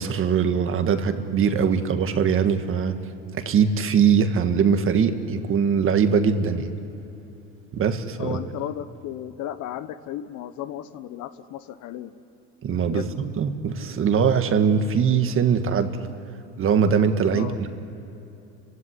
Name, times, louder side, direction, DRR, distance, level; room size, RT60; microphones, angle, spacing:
voice 1, 0.0-3.0 3.3-6.7 7.7-8.4 12.6-16.0 16.6-17.7, right 6 dB, 40° right, 8 dB, 1.7 m, -21 dB
voice 2, 8.2-12.2 12.8-13.1 17.3-17.6, left 11 dB, 60° left, 12 dB, 1.2 m, -34 dB
29.5 x 16.5 x 9.8 m, 2.9 s
supercardioid pair, 110°, 33 cm